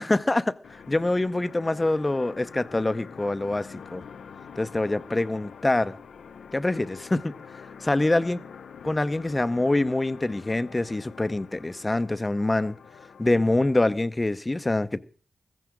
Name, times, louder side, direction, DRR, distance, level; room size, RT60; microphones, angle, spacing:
voice 1, 0.0-4.0 4.6-6.0 6.5-7.3 7.8-8.4 8.8-12.8 13.2-15.0, left 2 dB, 25° left, 0.7 m, -25 dB
sound 1, 0.6-14.0, left 6 dB, 85° left, 0.6 m, -46 dB
15.5 x 14.5 x 3.8 m
cardioid pair, 60°, 0 cm